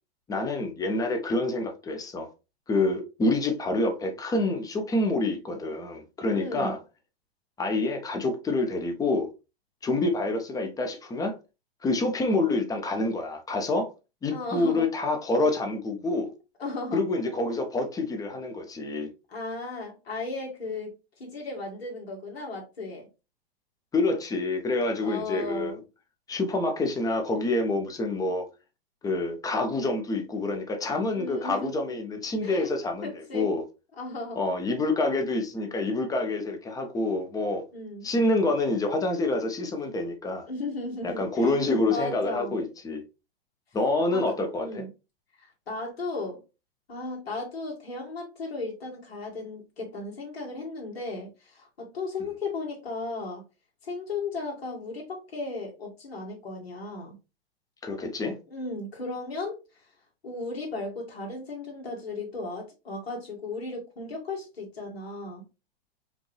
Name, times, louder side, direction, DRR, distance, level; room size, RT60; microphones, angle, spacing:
voice 1, 0.3-2.3 2.7-6.8 7.6-9.3 9.8-11.4 11.8-13.9 14.2-16.3 16.9-19.1 23.9-25.8 26.3-28.5 29.0-33.6 34.4-37.6 38.0-40.5 41.0-43.0 43.7-44.9 57.8-58.4, left 2 dB, 10° left, 0.8 m, -27 dB
voice 2, 6.3-6.8 14.3-14.9 16.6-17.0 19.3-23.1 25.0-25.8 31.1-31.7 32.4-32.7 33.0-33.5 34.0-34.4 37.7-38.1 40.5-41.6 41.9-42.6 44.1-44.9 45.4-46.4 46.9-53.4 53.8-57.1 58.5-59.6 60.2-65.4, left 3 dB, 75° left, 2.0 m, -35 dB
5.1 x 2.7 x 3.1 m
hypercardioid pair, 115°, 31 cm